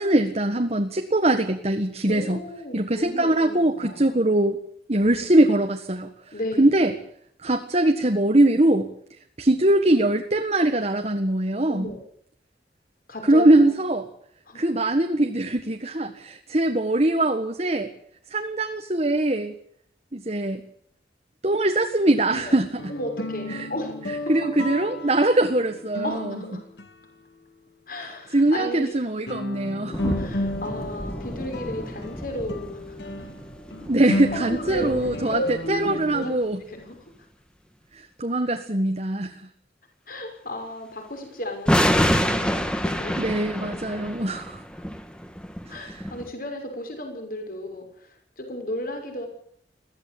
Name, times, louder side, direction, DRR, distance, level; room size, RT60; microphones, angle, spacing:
voice 1, 0.0-2.4 2.7-4.6 4.9-6.1 6.6-6.9 7.4-8.9 9.4-11.9 13.2-14.1 14.5-17.9 18.3-19.5 20.1-20.6 21.4-22.7 23.5-23.7 24.3-26.3 28.3-30.2 33.9-35.4 35.7-36.6 38.2-39.3 43.2-44.6 45.7-46.0, right 1 dB, 35° right, 5 dB, 1.6 m, -22 dB
voice 2, 2.0-4.2 5.0-5.3 6.3-6.8 11.7-12.0 13.1-13.8 14.5-14.7 22.3-22.6 22.9-24.6 26.0-26.6 27.9-28.9 30.1-33.3 34.0-36.3 36.7-37.1 40.1-43.2 43.6-44.0 45.7-49.3, left 1 dB, 50° left, 4 dB, 6.2 m, -34 dB
sound 1, 22.5-27.8 28.4-28.5 29.3-36.3, left 1 dB, 70° left, 2.6 m, -34 dB
sound 2, 29.9-36.2 41.7-46.3, equal, 5° left, 1.9 m, -28 dB
22.0 x 16.0 x 8.7 m, 0.65 s
head